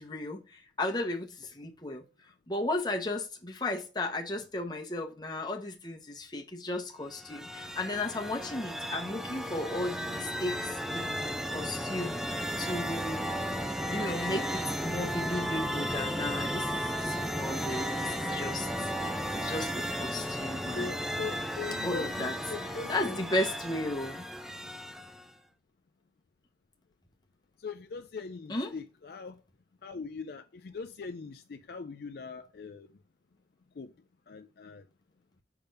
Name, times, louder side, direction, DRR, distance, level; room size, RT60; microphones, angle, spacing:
voice 1, 0.0-2.1 2.5-12.1 12.6-13.3 13.9-20.9 21.8-22.3 22.9-24.2 28.5-28.7, left 2 dB, 25° left, 1.1 m, -35 dB
sound 1, 7.1-25.3, equal, ahead, 0.5 m, -34 dB
voice 2, 20.7-23.2 27.6-29.4 29.8-32.9 33.8-33.9 34.3-34.9, left 4 dB, 55° left, 0.4 m, -41 dB
5.8 x 3.5 x 5.2 m
head